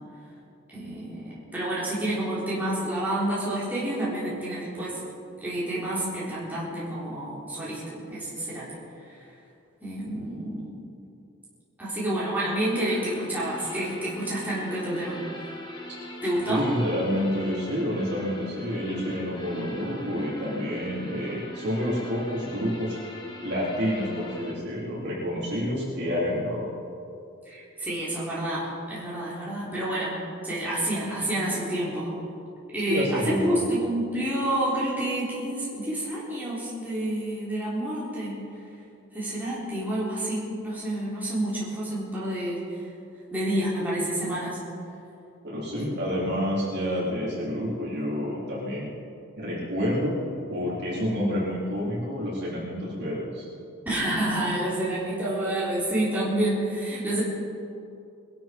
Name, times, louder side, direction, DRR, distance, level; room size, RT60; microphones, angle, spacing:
voice 1, 0.7-5.0 5.4-8.7 9.0-9.2 9.8-10.8 11.8-15.2 16.2-16.7 27.5-30.2 30.4-32.1 32.7-38.4 39.1-42.6 43.3-44.6 45.8-46.1 53.9-57.2, right 1 dB, 10° right, -9 dB, 3.9 m, -29 dB
sound 1, 12.5-24.5, left 1 dB, 20° left, 1.5 m, -41 dB
voice 2, 16.5-23.0 23.4-26.7 32.8-33.6 45.4-48.9 49.4-50.2 50.5-53.4, equal, 50° right, -6 dB, 4.1 m, -28 dB
22.0 x 12.0 x 4.6 m, 2.6 s
head